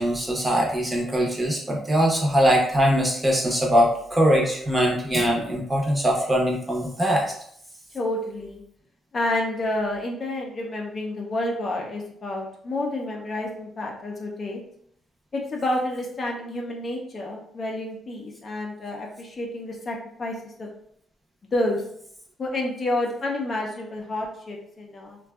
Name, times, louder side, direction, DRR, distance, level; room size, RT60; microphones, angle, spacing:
voice 1, 0.0-7.3, equal, 15° right, -2 dB, 0.7 m, -22 dB
voice 2, 7.9-8.6 9.1-14.6 15.3-20.7 21.5-21.8 22.4-25.2, left 1 dB, 40° left, 0 dB, 0.5 m, -29 dB
2.5 x 2.2 x 2.3 m, 0.67 s
cardioid pair, 90°, 0 cm